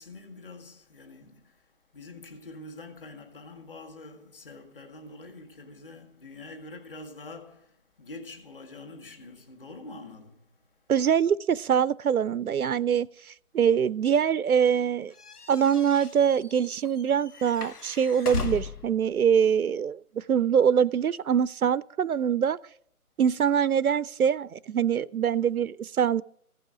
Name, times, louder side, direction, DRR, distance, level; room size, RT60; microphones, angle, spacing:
voice 1, 0.0-11.1, left 2 dB, 35° left, 1.9 m, -46 dB
voice 2, 10.9-15.1 15.5-22.6 23.2-26.2, right 8 dB, 70° right, 0.5 m, -24 dB
sound 1, 15.2-18.9, left 6 dB, 80° left, 1.3 m, -37 dB
15.0 x 5.6 x 9.8 m
figure-of-eight pair, 170°, 45 cm